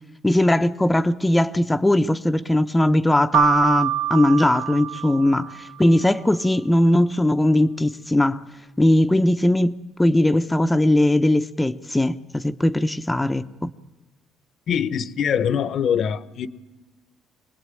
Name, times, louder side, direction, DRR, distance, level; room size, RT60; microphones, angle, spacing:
voice 1, 0.2-8.4 8.8-13.7, left 1 dB, 10° left, 0.8 m, -19 dB
Keyboard (musical), 3.3-5.9, right 12 dB, 75° right, 0.8 m, -25 dB
voice 2, 14.7-16.5, left 8 dB, 60° left, 1.0 m, -23 dB
24.5 x 19.0 x 9.1 m
cardioid pair, 85°, 0 cm